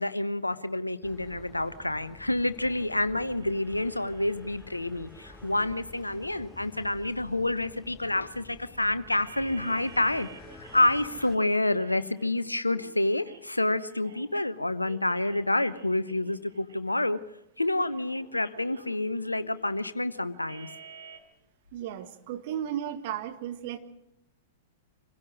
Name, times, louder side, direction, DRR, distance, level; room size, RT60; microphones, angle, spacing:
voice 1, 0.0-17.2 17.6-20.7, left 2 dB, 85° left, 14 dB, 1.0 m, -28 dB
sound 1, 1.0-11.4, left 3 dB, 15° left, 1.3 m, -50 dB
sound 2, 3.4-14.3 14.8-17.2 17.8-21.2, right 3 dB, 70° right, 3.8 m, -52 dB
voice 2, 21.7-23.8, right 10 dB, 50° right, 8 dB, 1.9 m, -34 dB
26.0 x 16.5 x 6.3 m, 0.86 s
figure-of-eight pair, 100°, 0 cm